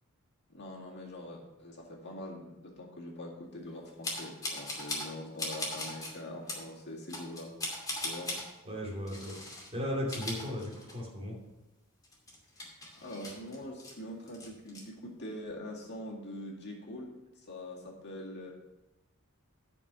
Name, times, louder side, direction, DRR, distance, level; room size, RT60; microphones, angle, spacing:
voice 1, 0.5-7.5 8.0-8.3 13.0-17.1 17.4-18.5, left 1 dB, 50° left, -2 dB, 2.1 m, -43 dB
sound 1, 4.0-5.1 5.4-6.1 6.5-6.6 7.1-8.5 9.1-9.7 10.0-11.2 11.5-11.6 12.0-13.9 14.3-14.8, left 2 dB, 15° left, 2.5 m, -38 dB
voice 2, 8.6-9.4 9.7-11.4, equal, 30° right, -2 dB, 2.6 m, -36 dB
11.0 x 5.5 x 5.5 m, 1.0 s
head